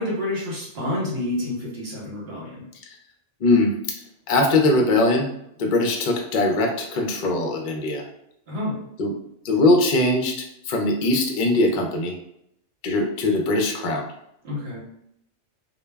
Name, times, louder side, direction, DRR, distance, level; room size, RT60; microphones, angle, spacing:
voice 1, 0.0-2.6 8.5-8.8 14.4-14.8, left 1 dB, 60° right, -4 dB, 1.0 m, -29 dB
voice 2, 3.4-4.0 4.3-5.3 5.6-8.0 9.0-9.1 9.4-12.1 12.8-14.0, left 2 dB, 55° left, 2 dB, 0.6 m, -21 dB
2.2 x 2.1 x 3.3 m, 0.75 s
omnidirectional pair, 1.2 m